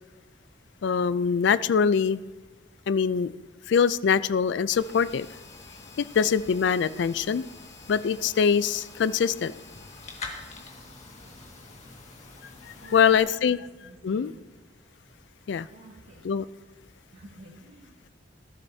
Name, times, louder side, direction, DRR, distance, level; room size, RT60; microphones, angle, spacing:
voice 1, 0.8-2.2 2.9-3.3 3.7-5.3 6.0-7.4 7.9-9.5 12.9-13.6 14.0-14.3 15.5-15.7 16.2-16.4, left 6 dB, 65° left, 16 dB, 0.4 m, -23 dB
sound 1, 4.7-13.2, left 3 dB, 40° left, 1.8 m, -45 dB
voice 2, 12.8-13.5 13.8-14.4 15.7-16.3 17.1-18.1, right 1 dB, 75° right, -4 dB, 1.9 m, -49 dB
18.5 x 11.5 x 2.8 m, 1.2 s
head